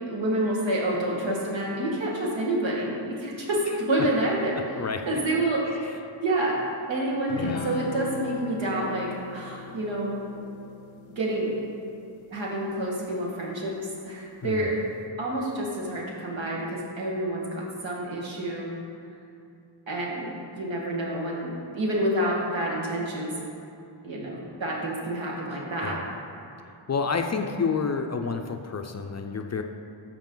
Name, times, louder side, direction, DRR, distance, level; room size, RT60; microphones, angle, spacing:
voice 1, 0.1-4.6 5.1-5.6 6.2-6.6 6.9-10.2 11.2-11.5 12.3-13.8 14.1-14.8 15.2-18.7 19.9-23.3 24.0-26.0, right 1 dB, 75° right, -3 dB, 1.9 m, -28 dB
voice 2, 3.7-4.1 4.8-5.2 5.7-6.0 7.4-7.7 14.4-14.7 18.4-18.5 25.5-26.0 26.9-29.6, left 5 dB, 35° left, 5 dB, 0.4 m, -30 dB
sound 1, 7.3-13.0, left 5 dB, 80° left, 0.6 m, -39 dB
13.0 x 4.8 x 3.8 m, 2.6 s
wide cardioid pair, 110°, 46 cm